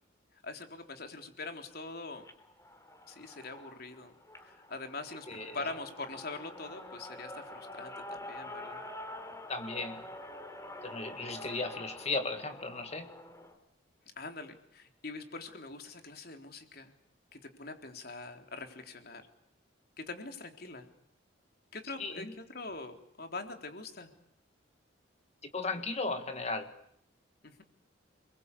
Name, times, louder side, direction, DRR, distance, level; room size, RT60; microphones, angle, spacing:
voice 1, 0.4-2.2 3.1-8.8 11.4-11.5 14.2-16.9 17.3-19.3 20.0-20.9 21.7-24.1 27.4-27.6, left 3 dB, 50° left, 6 dB, 3.8 m, -43 dB
sound 1, 2.1-13.5, left 1 dB, 15° left, 3.5 m, -47 dB
voice 2, 9.5-10.0 10.8-13.1 22.0-22.3 25.5-26.7, left 3 dB, 35° left, 7 dB, 1.9 m, -36 dB
30.0 x 22.5 x 8.5 m, 0.70 s
head